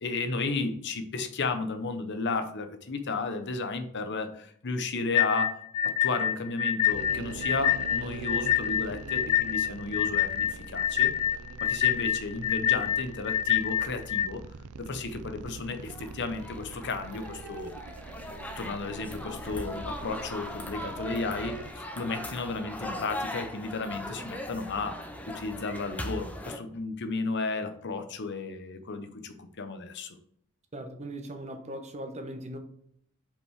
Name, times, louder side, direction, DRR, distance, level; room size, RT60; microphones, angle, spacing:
voice 1, 0.0-11.1 11.6-14.4 14.8-17.7 18.6-30.2, left 3 dB, 50° left, 0.8 m, -33 dB
sound 1, 5.1-14.3, left 10 dB, 80° left, 0.4 m, -26 dB
sound 2, 6.9-21.7, right 5 dB, 75° right, 0.4 m, -44 dB
sound 3, 15.8-26.6, left 1 dB, 5° left, 0.6 m, -39 dB
voice 2, 30.7-32.6, right 1 dB, 30° right, 1.0 m, -39 dB
5.4 x 5.2 x 4.7 m
head